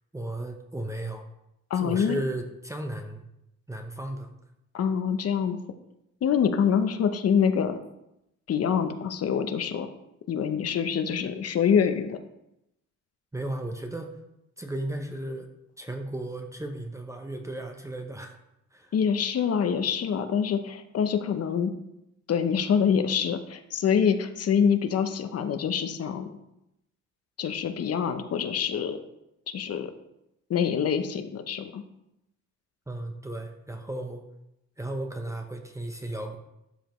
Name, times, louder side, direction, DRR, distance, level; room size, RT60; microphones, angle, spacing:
voice 1, 0.1-1.3 1.7-3.2 3.7-4.3 13.3-14.1 14.6-15.5 15.8-18.4 18.7-18.9 32.9-34.2 34.8-36.4, right 1 dB, 10° right, 4 dB, 0.8 m, -35 dB
voice 2, 1.7-2.2 4.7-5.6 6.2-7.8 8.5-9.9 10.3-12.2 18.9-21.7 22.3-26.3 27.4-29.0 29.5-29.9 30.5-31.8, left 7 dB, 55° left, 9 dB, 0.8 m, -25 dB
12.0 x 5.0 x 3.1 m, 0.85 s
cardioid pair, 90°, 30 cm